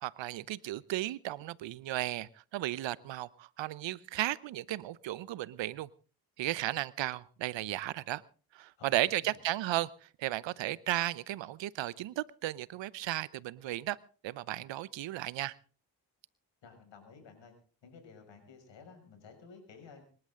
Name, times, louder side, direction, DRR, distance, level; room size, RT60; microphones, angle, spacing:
voice 1, 0.0-5.9 6.4-8.2 8.5-14.0 14.2-15.6, right 15 dB, 70° right, 21 dB, 0.9 m, -35 dB
voice 2, 8.8-9.4 16.6-17.5 17.8-20.0, left 5 dB, 70° left, 5 dB, 6.4 m, -54 dB
25.5 x 12.0 x 3.8 m, 0.39 s
hypercardioid pair, 45°, 46 cm